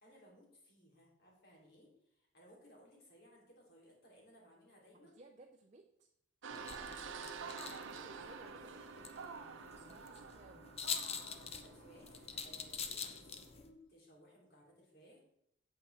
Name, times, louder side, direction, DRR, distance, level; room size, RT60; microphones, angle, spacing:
voice 1, 0.0-5.2 6.5-8.1 11.2-15.2, equal, 50° left, -2 dB, 3.0 m, -62 dB
voice 2, 4.9-6.1 7.7-10.6 12.8-13.2, right 2 dB, 35° right, 3 dB, 0.5 m, -60 dB
sound 1, 6.4-13.5, right 5 dB, 75° right, 0.7 m, -49 dB
sound 2, 6.5-13.7, left 6 dB, 30° left, 0.6 m, -46 dB
9.0 x 7.5 x 3.3 m, 0.76 s
head